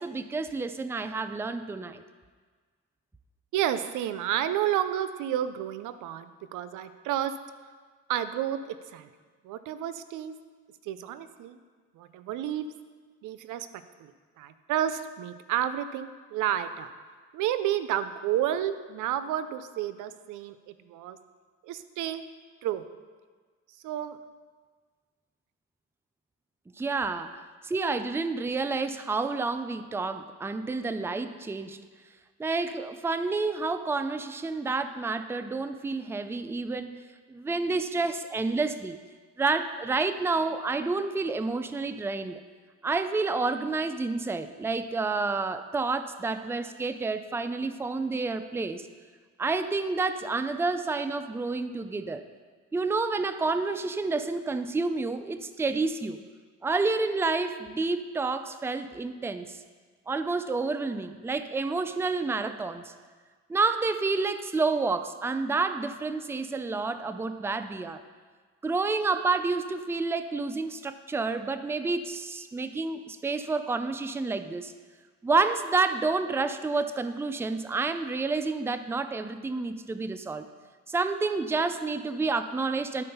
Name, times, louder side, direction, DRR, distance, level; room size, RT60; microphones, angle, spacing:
voice 1, 0.0-2.0 26.8-31.8 32.4-36.9 37.3-39.0 39.4-42.4 42.8-48.8 49.4-52.2 52.7-56.2 56.6-59.6 60.1-62.9 63.5-68.0 68.6-74.7 75.2-80.5 80.9-83.0, right 3 dB, 10° right, 10 dB, 0.4 m, -29 dB
voice 2, 3.5-7.4 8.1-9.1 9.4-10.3 10.8-11.6 11.9-12.7 13.2-14.1 14.4-16.9 17.3-21.2 21.6-22.2 22.6-22.9 23.8-24.2, right 11 dB, 85° right, 12 dB, 0.5 m, -31 dB
12.0 x 4.3 x 5.5 m, 1.5 s
cardioid pair, 90°, 30 cm